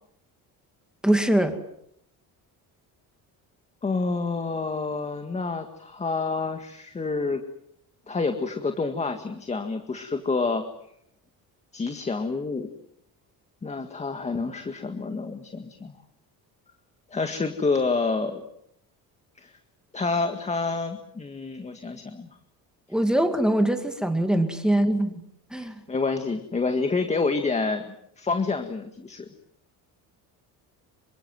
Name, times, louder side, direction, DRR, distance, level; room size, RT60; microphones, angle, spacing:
voice 1, 1.0-1.6 22.9-25.2 25.5-25.8, right 1 dB, ahead, 7 dB, 2.2 m, -22 dB
voice 2, 3.8-7.4 8.1-10.6 11.7-12.7 13.6-15.9 17.1-18.4 19.4-19.5 19.9-22.3 25.6-29.3, left 4 dB, 20° left, 6 dB, 1.8 m, -28 dB
27.5 x 25.0 x 7.7 m, 0.73 s
cardioid pair, 170°, 37 cm